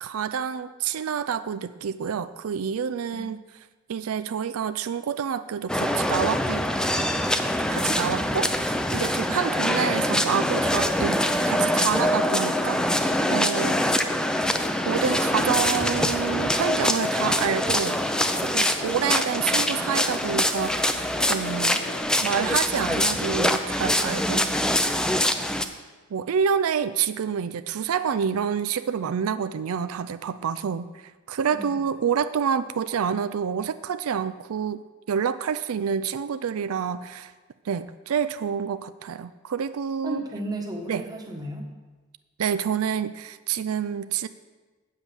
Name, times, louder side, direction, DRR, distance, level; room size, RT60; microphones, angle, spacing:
voice 1, 0.0-3.4 3.9-6.7 7.7-13.8 14.8-18.0 18.4-21.9 22.2-24.5 26.1-30.9 31.3-34.8 35.1-37.3 37.6-40.2 40.9-41.0 42.4-44.3, right 7 dB, 90° right, 13 dB, 0.4 m, -28 dB
sound 1, 5.7-25.7, left 1 dB, 5° left, 0.5 m, -24 dB
sound 2, 12.4-22.0, left 3 dB, 45° left, 0.8 m, -40 dB
voice 2, 31.5-31.8 40.0-41.6, right 1 dB, 20° right, 1 dB, 1.3 m, -34 dB
8.2 x 7.2 x 6.9 m, 1.3 s
head